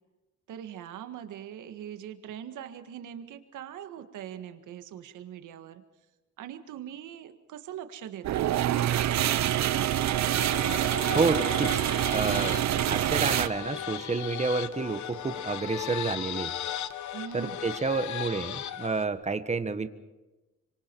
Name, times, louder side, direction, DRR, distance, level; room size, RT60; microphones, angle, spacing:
voice 1, 0.5-5.8 6.4-10.1 17.1-17.7, right 10 dB, 80° right, 8 dB, 1.7 m, -42 dB
sound 1, 8.2-13.5, right 12 dB, 65° right, 0.8 m, -26 dB
sound 2, 10.4-19.1, left 10 dB, 70° left, 1.1 m, -37 dB
voice 2, 11.1-11.8 12.1-12.6 12.9-16.5 17.3-19.9, right 4 dB, 20° right, 10 dB, 1.4 m, -29 dB
26.0 x 24.5 x 4.6 m, 1.1 s
cardioid pair, 90°, 30 cm